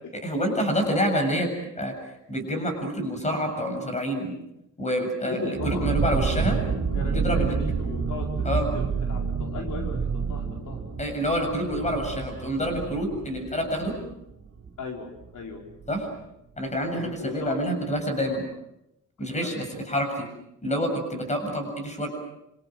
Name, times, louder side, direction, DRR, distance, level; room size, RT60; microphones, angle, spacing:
voice 1, 0.1-1.5 1.8-1.9 2.3-4.3 4.8-6.6 7.1-7.5 8.4-8.7 11.0-14.0 15.9-16.1 16.6-18.5 19.2-20.3 20.6-22.1, equal, 20° left, 5 dB, 7.5 m, -27 dB
voice 2, 5.0-5.9 6.9-10.8 14.8-15.6 16.9-17.6 19.4-19.7, left 4 dB, 75° left, 1 dB, 4.9 m, -37 dB
sound 1, 5.5-15.0 15.2-15.3 15.7-15.9, right 5 dB, 50° right, 5.6 m, -29 dB
28.0 x 26.5 x 6.2 m, 0.84 s
wide cardioid pair, 150°, 32 cm